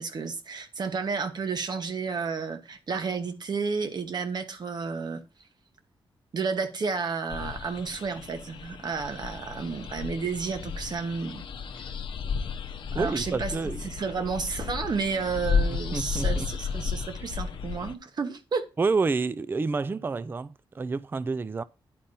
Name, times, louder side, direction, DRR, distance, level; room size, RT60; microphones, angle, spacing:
voice 1, 0.0-5.2 6.3-11.5 11.8-11.9 12.9-13.5 13.8-18.7, right 5 dB, 55° right, 1.3 m, -31 dB
sound 1, 7.3-17.9, left 5 dB, 70° left, 0.7 m, -33 dB
voice 2, 12.9-13.8 15.9-16.5 18.8-21.6, right 4 dB, 25° right, 0.4 m, -28 dB
10.0 x 4.2 x 5.3 m
cardioid pair, 90°, 9 cm